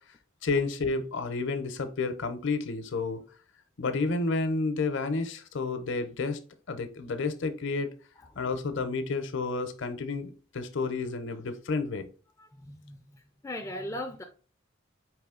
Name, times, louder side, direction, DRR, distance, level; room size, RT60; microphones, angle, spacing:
voice 1, 0.4-3.2 3.8-6.4 6.7-7.9 8.4-12.1, left 3 dB, 65° left, 0.6 m, -30 dB
voice 2, 12.4-14.2, left 1 dB, 15° left, 0.3 m, -39 dB
4.8 x 3.0 x 3.6 m
head